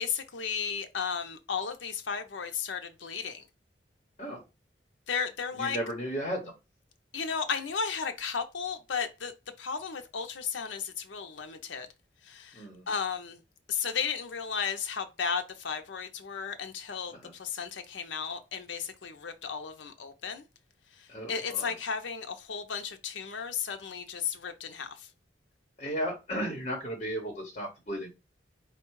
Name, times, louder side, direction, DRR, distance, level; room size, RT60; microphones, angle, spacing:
voice 1, 0.0-3.4 5.1-5.8 7.1-9.3 9.6-11.9 12.2-13.4 13.7-20.4 21.3-25.1, left 6 dB, 85° left, 0.6 m, -34 dB
voice 2, 5.5-6.5 12.5-12.9 17.1-17.3 21.1-21.7 25.8-28.1, equal, 35° left, 1.0 m, -35 dB
4.5 x 2.3 x 4.6 m
head